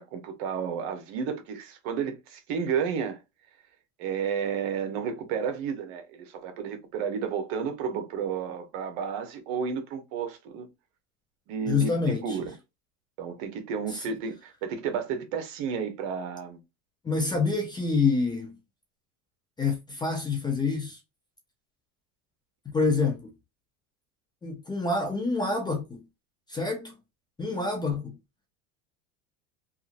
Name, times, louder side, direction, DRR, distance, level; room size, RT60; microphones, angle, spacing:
voice 1, 0.0-3.2 4.0-10.7 11.5-12.5 13.2-16.6, right 6 dB, 65° right, 1.0 m, -32 dB
voice 2, 11.7-12.4 13.9-14.0 17.0-18.5 19.6-21.0 22.7-23.3 24.4-26.0 26.5-26.9 27.4-28.2, left 4 dB, 10° left, 0.5 m, -27 dB
2.8 x 2.5 x 2.5 m
supercardioid pair, 140°, 37 cm